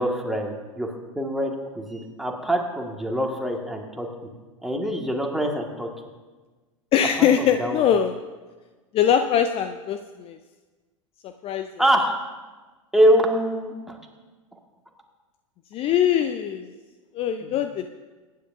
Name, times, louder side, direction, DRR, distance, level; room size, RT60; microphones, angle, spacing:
voice 1, 0.0-4.1 4.6-5.9 7.0-7.3 7.6-7.9 11.8-12.2 12.9-14.0 17.4-17.6, equal, ahead, 1 dB, 1.9 m, -24 dB
voice 2, 6.9-8.1 8.9-10.4 11.2-11.7 15.7-16.7 17.1-17.9, left 9 dB, 35° left, 8 dB, 0.6 m, -22 dB
23.5 x 10.5 x 2.7 m, 1.3 s
figure-of-eight pair, 85°, 17 cm